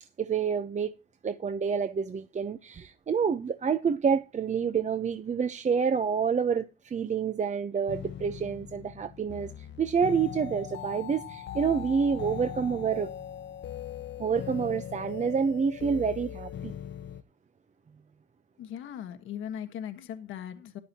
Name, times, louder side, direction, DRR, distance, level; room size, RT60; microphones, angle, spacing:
voice 1, 0.2-0.9 1.2-13.1 14.2-16.7, right 6 dB, 35° right, 0.8 m, -28 dB
sound 1, 7.9-17.2, left 10 dB, 65° left, 0.9 m, -40 dB
voice 2, 18.6-20.8, left 9 dB, 85° left, 1.5 m, -39 dB
13.5 x 11.5 x 2.9 m
cardioid pair, 90°, 20 cm